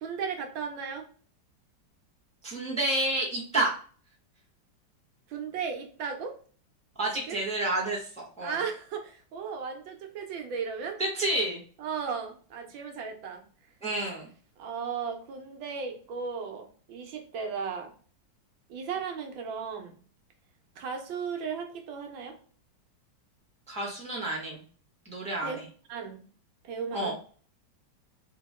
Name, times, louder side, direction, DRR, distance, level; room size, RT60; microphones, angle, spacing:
voice 1, 0.0-1.1 5.3-6.4 7.3-7.4 8.4-11.0 11.8-13.4 14.6-17.9 18.7-20.0 20.8-22.4 25.4-25.6 25.9-26.2 26.6-27.1, right 6 dB, 85° right, 3 dB, 1.6 m, -35 dB
voice 2, 2.4-3.7 7.0-8.6 11.0-11.6 13.8-14.3 23.7-24.6 25.0-25.6 26.9-27.1, right 2 dB, 5° left, -4 dB, 0.8 m, -29 dB
3.9 x 2.9 x 3.5 m, 0.42 s
omnidirectional pair, 2.0 m